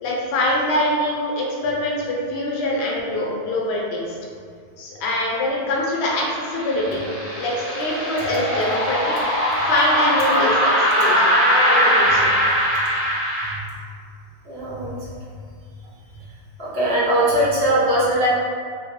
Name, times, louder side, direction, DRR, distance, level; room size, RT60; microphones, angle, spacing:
voice 1, 0.0-4.1 4.8-7.1 7.4-9.2 9.6-11.3 11.7-12.3, left 1 dB, 75° left, -3 dB, 0.8 m, -24 dB
sound 1, 5.8-13.5, equal, 15° left, 0.4 m, -20 dB
voice 2, 14.4-15.1 16.6-18.3, right 1 dB, 60° right, -8 dB, 1.0 m, -20 dB
2.6 x 2.2 x 2.8 m, 2.2 s
omnidirectional pair, 1.1 m